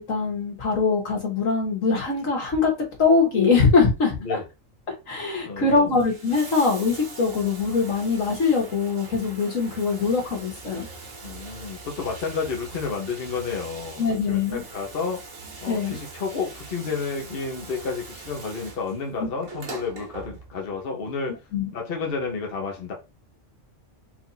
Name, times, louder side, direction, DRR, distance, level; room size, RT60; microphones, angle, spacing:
voice 1, 0.0-2.7 3.0-4.4 5.1-10.9 14.0-14.6 15.7-16.0 21.5-21.6, left 4 dB, 80° left, 2.1 m, -22 dB
voice 2, 5.4-5.9 11.2-15.2 15.6-21.4 21.7-22.9, left 5 dB, 45° left, 1.2 m, -31 dB
Bathtub (filling or washing), 5.9-20.8 21.9-22.0, right 3 dB, 80° right, 1.7 m, -42 dB
4.5 x 2.7 x 4.1 m
omnidirectional pair, 1.4 m